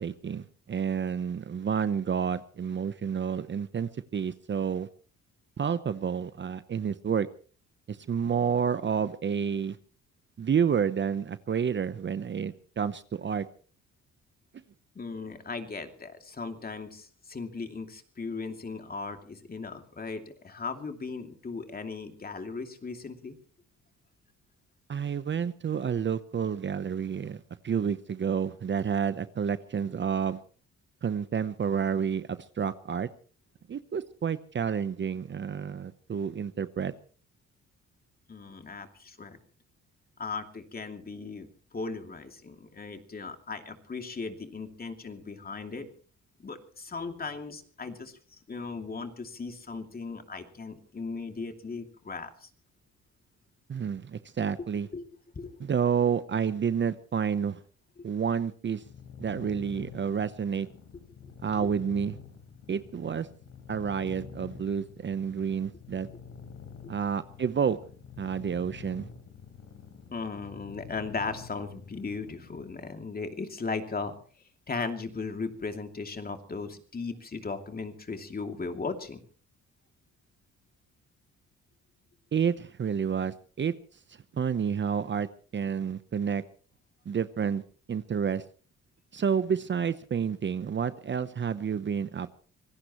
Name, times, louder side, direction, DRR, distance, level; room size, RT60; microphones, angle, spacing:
voice 1, 0.0-4.9 5.6-7.3 7.9-9.8 10.4-13.5 24.9-30.4 31.0-33.1 33.7-36.9 53.7-54.9 55.6-57.6 58.0-58.8 59.2-60.7 61.4-62.2 62.7-63.3 63.7-66.1 66.9-67.8 68.2-69.1 82.3-83.7 84.1-86.4 87.1-87.6 87.9-88.4 89.1-92.3, right 7 dB, 40° right, 14 dB, 0.8 m, -29 dB
voice 2, 14.9-23.3 38.3-39.4 40.2-41.5 41.7-45.9 46.4-52.5 54.9-55.0 55.3-55.7 61.5-61.7 66.8-66.9 70.1-74.1 74.7-79.2, left 4 dB, 30° left, 6 dB, 2.7 m, -37 dB
sound 1, 58.8-72.6, left 7 dB, 60° left, 4.3 m, -47 dB
25.5 x 17.0 x 3.1 m, 0.41 s
cardioid pair, 90°, 30 cm